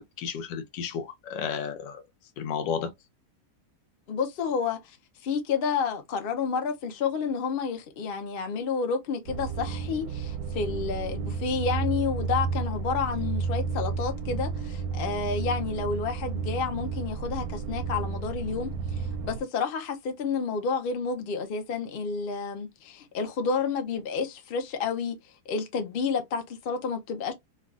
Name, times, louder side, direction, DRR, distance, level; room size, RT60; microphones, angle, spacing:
voice 1, 0.0-2.0 2.4-2.9, left 7 dB, 85° left, 1.3 m, -32 dB
voice 2, 4.1-5.0 5.2-25.2 25.5-27.3, left 5 dB, 60° left, 0.5 m, -30 dB
sound 1, 9.2-19.4, right 5 dB, 70° right, 0.9 m, -32 dB
3.3 x 2.3 x 2.3 m
omnidirectional pair, 1.9 m